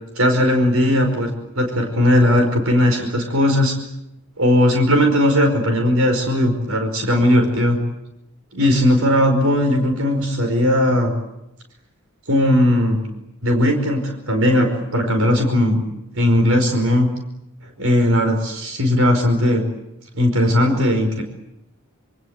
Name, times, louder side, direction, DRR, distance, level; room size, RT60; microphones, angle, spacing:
voice 1, 0.2-3.7 4.4-7.8 8.5-11.1 12.3-13.0 13.4-15.8 16.1-17.1 17.8-19.6 20.1-21.2, left 1 dB, 75° right, 4 dB, 5.2 m, -17 dB
27.5 x 25.5 x 8.1 m, 0.86 s
head